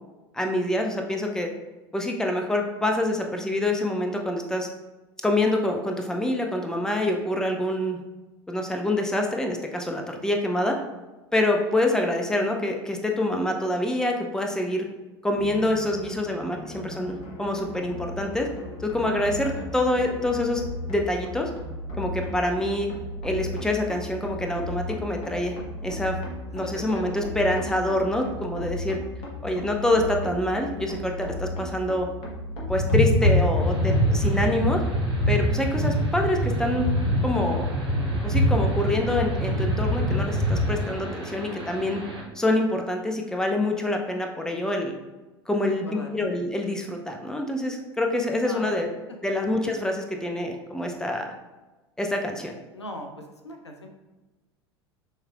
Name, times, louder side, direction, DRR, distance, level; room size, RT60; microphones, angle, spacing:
voice 1, 0.3-1.5 1.9-4.7 5.2-8.0 8.5-10.8 11.3-14.9 15.2-18.5 18.8-20.6 20.9-21.5 22.0-22.9 23.2-25.5 25.8-26.2 26.5-29.0 29.4-32.1 32.7-34.8 35.3-36.9 37.2-37.7 38.2-42.0 42.3-44.9 45.5-48.9 49.2-51.3 52.0-52.5, left 1 dB, 5° left, 3 dB, 0.6 m, -26 dB
sound 1, 15.3-34.1, left 1 dB, 45° left, 1.3 m, -36 dB
voice 2, 18.9-19.6 26.6-27.2 33.4-33.5 45.8-46.1 48.4-48.8 52.7-53.9, left 1 dB, 90° left, 3 dB, 0.6 m, -40 dB
sound 2, 32.7-40.8, equal, 65° left, 1.4 m, -24 dB
sound 3, 33.6-42.2, right 1 dB, 85° right, 1.3 m, -39 dB
6.2 x 3.2 x 2.4 m, 1.1 s
figure-of-eight pair, 75°, 14 cm